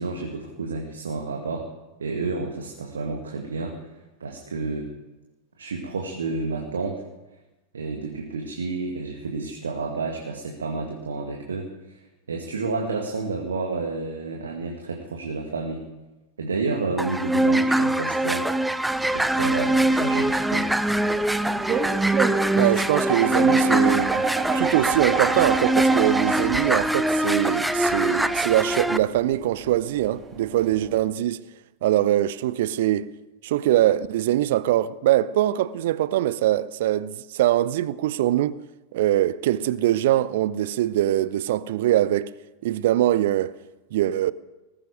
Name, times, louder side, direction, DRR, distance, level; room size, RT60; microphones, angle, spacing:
voice 1, 0.0-1.7 2.0-3.8 4.2-4.9 5.6-7.0 7.7-12.0 12.3-15.8 16.4-18.5 19.1-20.7, right 3 dB, 70° right, 1.9 m, -30 dB
sound 1, 17.0-29.0, right 1 dB, 5° right, 0.6 m, -23 dB
sound 2, 18.9-31.0, right 6 dB, 30° right, 2.0 m, -31 dB
voice 2, 22.5-24.3 24.5-31.4 31.8-33.1 33.4-38.6 38.9-42.3 42.6-43.5 43.9-44.3, right 13 dB, 55° right, 0.6 m, -23 dB
20.0 x 13.5 x 5.1 m
figure-of-eight pair, 90°, 0 cm